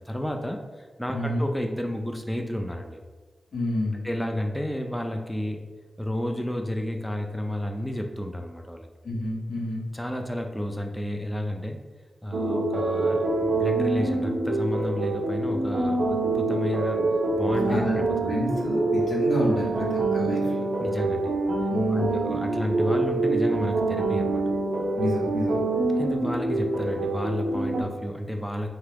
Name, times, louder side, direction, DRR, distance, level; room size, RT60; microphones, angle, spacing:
voice 1, 0.1-3.0 3.9-5.6 6.0-8.9 9.9-11.8 12.2-17.0 17.3-18.6 20.8-21.3 21.9-24.4 25.9-28.7, left 1 dB, 10° left, 3 dB, 0.3 m, -31 dB
voice 2, 1.1-1.4 3.5-4.1 9.0-9.8 17.6-18.0 18.3-20.7 21.2-21.3 21.7-22.3 25.0-25.6, left 1 dB, 85° left, -4 dB, 0.8 m, -29 dB
sound 1, 12.3-27.8, right 2 dB, 80° right, 0.4 m, -25 dB
2.9 x 2.3 x 3.3 m, 1.3 s
cardioid pair, 45°, 0 cm